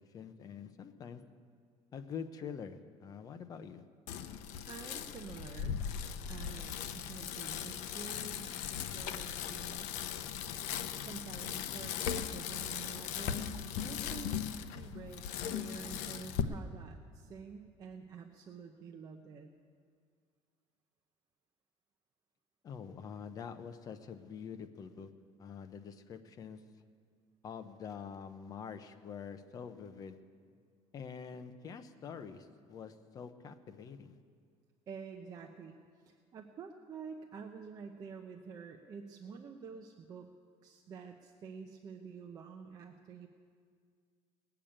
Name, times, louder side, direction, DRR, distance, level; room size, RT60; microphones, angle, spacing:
voice 1, 0.1-1.2 1.9-3.8 22.6-25.1 25.4-26.6 27.4-30.2 30.9-34.2, left 6 dB, 30° left, 8 dB, 0.7 m, -46 dB
Bicycle, 4.1-16.4, left 9 dB, 75° left, 0.8 m, -38 dB
voice 2, 4.7-5.8 6.3-8.6 8.9-9.9 11.0-19.5 34.9-35.8 36.0-40.3 40.6-43.3, right 6 dB, 30° right, 3 dB, 0.7 m, -48 dB
19.5 x 6.9 x 8.8 m, 2.1 s
cardioid pair, 170°, 12 cm